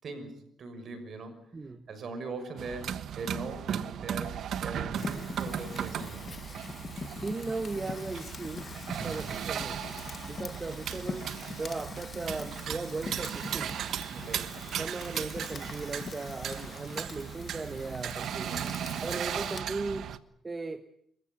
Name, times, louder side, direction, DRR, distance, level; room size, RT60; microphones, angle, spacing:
voice 1, 0.0-1.5 1.9-6.4 9.0-9.3 14.1-14.5 18.5-18.8, right 3 dB, 55° right, 9 dB, 6.3 m, -41 dB
voice 2, 1.5-1.9 7.1-8.7 9.0-11.3 11.6-13.8 14.8-18.5 19.0-20.1 20.4-20.9, right 3 dB, 25° right, 9 dB, 1.2 m, -37 dB
sound 1, 2.6-20.2, right 9 dB, 70° right, 1.3 m, -37 dB
Fire, 5.0-19.6, left 5 dB, 40° left, 1.9 m, -43 dB
28.0 x 15.0 x 9.5 m, 0.70 s
cardioid pair, 90°, 0 cm